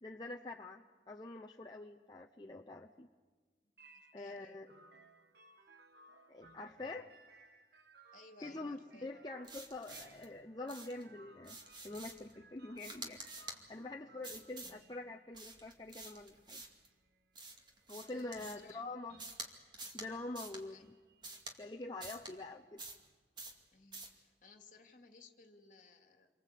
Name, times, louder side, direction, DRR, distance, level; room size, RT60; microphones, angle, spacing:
voice 1, 0.0-3.1 4.1-4.7 6.3-7.1 8.4-11.6 11.8-13.2 13.7-16.6 17.9-19.2 19.9-20.9 21.6-22.8, left 2 dB, 25° left, 1 dB, 0.8 m, -45 dB
voice 2, 3.8-4.6 8.1-9.1 14.0-14.2 18.1-18.9 20.7-20.8 23.7-26.3, left 4 dB, 45° left, 5 dB, 2.5 m, -60 dB
sound 1, 3.8-22.5, right 2 dB, 60° right, 1.5 m, -64 dB
sound 2, 9.4-10.3 10.7-11.0 11.4-12.3 12.8-13.6 14.2-14.8 15.3-16.9 17.3-18.7 19.2-19.5 19.7-20.1 20.3-20.6 21.2-21.6 22.0-22.3 22.8-23.1 23.4-23.6 23.9-24.2, right 2 dB, 25° right, 2.3 m, -49 dB
28.5 x 24.0 x 8.4 m, 1.4 s
head